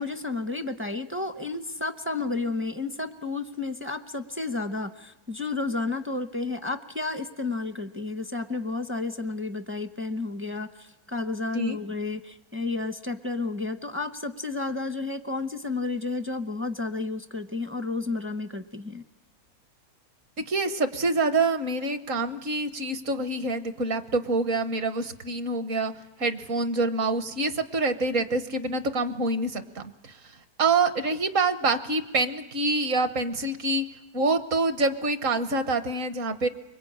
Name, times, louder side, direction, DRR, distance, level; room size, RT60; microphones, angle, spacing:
voice 1, 0.0-19.0, left 3 dB, 15° right, 8 dB, 0.5 m, -31 dB
voice 2, 20.4-25.9 26.2-30.2 30.6-33.8 34.1-36.5, right 3 dB, 60° right, 10 dB, 1.5 m, -26 dB
25.0 x 22.5 x 8.7 m, 1.1 s
omnidirectional pair, 1.6 m